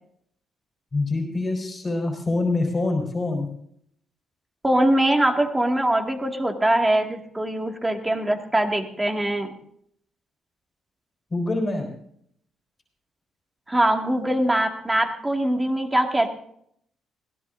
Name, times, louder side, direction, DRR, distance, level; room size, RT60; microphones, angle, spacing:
voice 1, 0.9-3.5 11.3-11.9, left 2 dB, 30° left, 2 dB, 4.1 m, -25 dB
voice 2, 4.6-9.5 13.7-16.3, right 1 dB, 15° right, 3 dB, 2.1 m, -22 dB
20.0 x 17.0 x 2.6 m, 0.68 s
cardioid pair, 90°, 0 cm